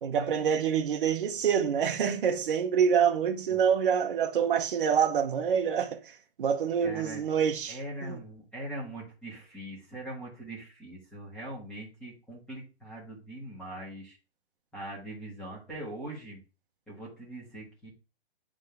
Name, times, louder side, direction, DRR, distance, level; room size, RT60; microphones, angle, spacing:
voice 1, 0.0-6.0 6.4-8.2, right 7 dB, 55° right, 0.9 m, -26 dB
voice 2, 6.8-7.2 7.7-14.2 14.7-16.4 16.9-17.9, right 1 dB, 5° left, 1.6 m, -41 dB
8.8 x 3.7 x 3.4 m
hypercardioid pair, 170°, 32 cm